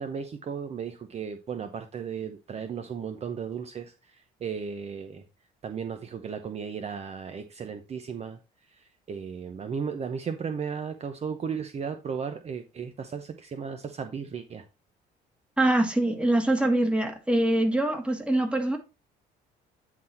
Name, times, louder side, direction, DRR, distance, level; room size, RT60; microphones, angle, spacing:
voice 1, 0.0-5.2 5.6-8.4 8.7-14.6, right 6 dB, 40° right, 0.9 m, -35 dB
voice 2, 15.6-18.8, right 1 dB, 5° right, 1.7 m, -24 dB
9.3 x 4.0 x 4.3 m
cardioid pair, 110°, 17 cm